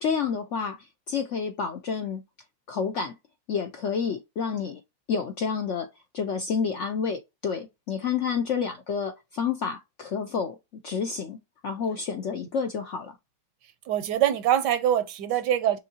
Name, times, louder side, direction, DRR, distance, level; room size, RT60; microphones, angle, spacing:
voice 1, 0.0-2.2 2.7-3.1 3.5-4.8 5.1-5.9 6.1-10.6 10.8-11.4 11.6-13.2, left 6 dB, 65° left, 0.7 m, -29 dB
voice 2, 13.9-15.8, right 11 dB, 75° right, 1.3 m, -24 dB
6.4 x 2.7 x 2.7 m
omnidirectional pair, 1.9 m